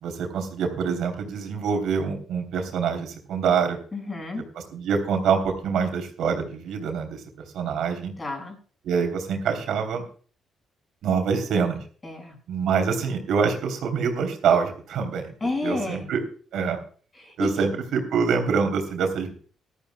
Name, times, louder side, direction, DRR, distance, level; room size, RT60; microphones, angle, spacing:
voice 1, 0.0-3.8 4.7-7.2 7.5-8.1 8.8-10.0 11.0-11.8 12.5-15.3 15.6-16.2 16.5-16.8 17.4-19.3, right 6 dB, 80° right, 4 dB, 3.1 m, -25 dB
voice 2, 3.9-4.4 8.2-8.6 12.0-12.4 15.4-16.1 17.1-17.6, left 2 dB, 25° left, 3 dB, 5.6 m, -30 dB
19.0 x 13.0 x 2.2 m, 0.42 s
cardioid pair, 105°, 0 cm